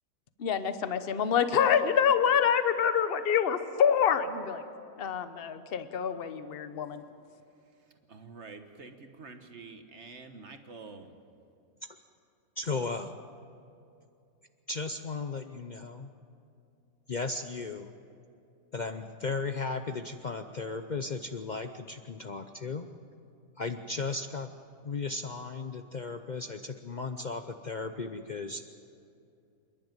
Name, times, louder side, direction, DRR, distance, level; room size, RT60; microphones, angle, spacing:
voice 1, 0.4-4.6 5.0-7.0, left 7 dB, 45° left, 10 dB, 1.0 m, -26 dB
voice 2, 8.1-11.1, right 4 dB, 45° right, 7 dB, 1.4 m, -47 dB
voice 3, 12.6-13.1 14.7-16.1 17.1-17.9 18.7-22.9 23.6-24.5 24.8-28.6, left 3 dB, 80° left, 8 dB, 0.4 m, -35 dB
27.5 x 11.0 x 9.1 m, 2.6 s
omnidirectional pair, 1.7 m